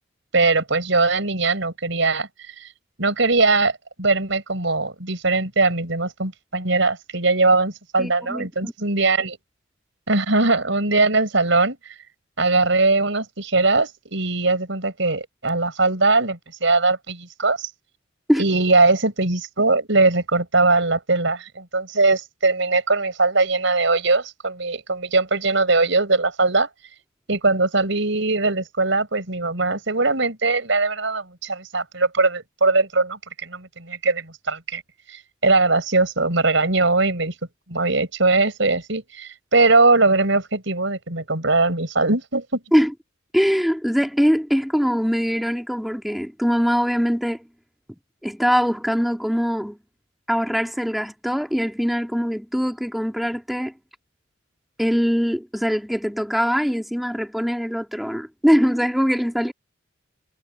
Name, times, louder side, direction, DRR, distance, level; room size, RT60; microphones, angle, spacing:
voice 1, 0.3-2.3 3.0-3.7 4.0-9.4 10.1-11.8 12.4-17.7 18.4-26.7 27.3-34.8 35.1-37.3 37.7-42.6, right 3 dB, 70° right, 5.6 m, -20 dB
voice 2, 8.0-8.7 18.3-18.4 42.7-42.9 43.3-47.4 48.2-49.8 50.3-53.7 54.8-59.5, equal, ahead, 2.0 m, -22 dB
head